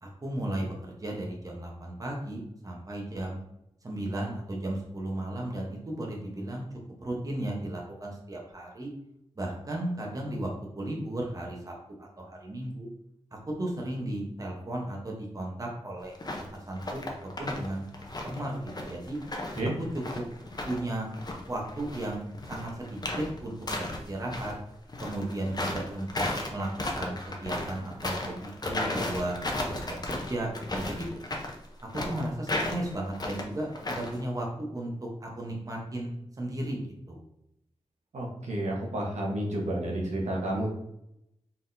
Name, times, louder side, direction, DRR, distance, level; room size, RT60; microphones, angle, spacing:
voice 1, 0.0-3.4 3.8-6.6 7.0-8.9 9.4-10.5 10.8-12.9 13.3-16.1 16.5-19.2 20.1-20.2 20.6-21.1 21.5-24.5 25.0-26.7 26.9-31.1 32.0-36.8 37.1-37.2, right 1 dB, 30° right, -1 dB, 0.9 m, -35 dB
sound 1, 16.2-16.5 16.8-17.7 17.9-20.8 21.1-24.5 24.9-34.2, left 2 dB, 35° left, 0.7 m, -34 dB
voice 2, 38.1-40.7, right 1 dB, 85° right, -2 dB, 1.1 m, -30 dB
4.3 x 3.8 x 2.6 m, 0.80 s
wide cardioid pair, 130°, 11 cm